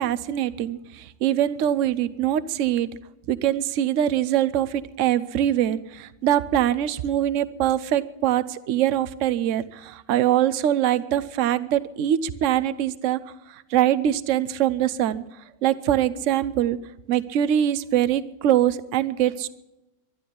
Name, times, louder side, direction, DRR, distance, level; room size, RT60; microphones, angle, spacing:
voice 1, 0.0-2.9 3.3-13.2 13.5-15.2 15.6-16.8 17.1-19.5, right 11 dB, 60° right, 15 dB, 0.8 m, -23 dB
12.0 x 12.0 x 10.0 m, 1.0 s
omnidirectional pair, 2.0 m